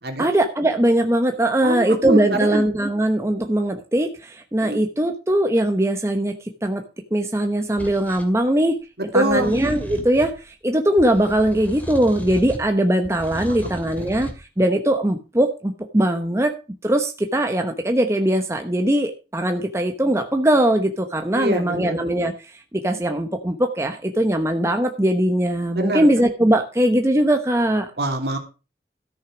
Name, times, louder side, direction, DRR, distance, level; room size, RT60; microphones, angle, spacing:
voice 1, 0.2-6.3 6.6-6.8 7.1-8.8 9.1-16.5 16.8-27.9, right 1 dB, 15° right, 5 dB, 0.9 m, -20 dB
voice 2, 1.6-2.6 4.6-4.8 9.1-9.5 13.5-13.6 13.9-14.2 21.3-22.0 25.7-26.1 28.0-28.4, right 1 dB, 65° right, 3 dB, 2.9 m, -24 dB
sound 1, 7.8-8.3 9.3-10.4 11.0-12.7 13.0-14.4, equal, 10° left, 2.4 m, -35 dB
13.5 x 6.5 x 6.1 m, 0.32 s
head